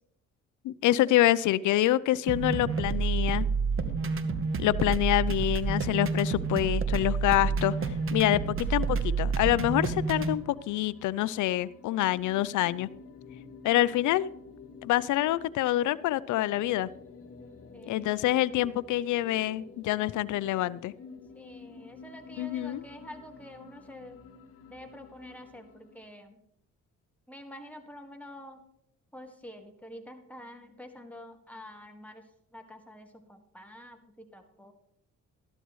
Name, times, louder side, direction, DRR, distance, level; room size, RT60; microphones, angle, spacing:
voice 1, 0.6-3.5 4.6-7.8 8.1-12.9 13.6-14.3 14.8-16.9 17.9-20.9 22.4-22.8, left 15 dB, 80° left, 18 dB, 0.5 m, -26 dB
sound 1, 2.3-10.3, right 5 dB, 45° right, 1.1 m, -29 dB
sound 2, 7.5-26.1, left 4 dB, 50° left, 1.6 m, -50 dB
voice 2, 17.7-18.3 21.3-24.2 24.7-26.4 27.3-28.6 29.1-34.7, left 1 dB, 5° left, 3 dB, 1.7 m, -48 dB
13.0 x 12.0 x 3.1 m, 0.76 s
cardioid pair, 90°, 30 cm